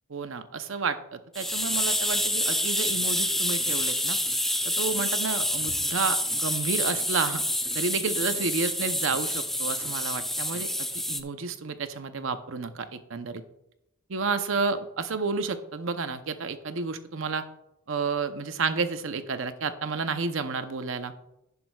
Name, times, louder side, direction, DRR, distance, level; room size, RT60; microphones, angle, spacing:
voice 1, 0.1-4.2 4.6-7.4 7.7-10.7 11.1-13.4 14.1-17.4 17.9-21.1, right 4 dB, 65° right, 10 dB, 0.7 m, -31 dB
sound 1, 1.3-11.2, left 1 dB, ahead, 0.4 m, -28 dB
10.5 x 10.0 x 2.3 m, 0.85 s
head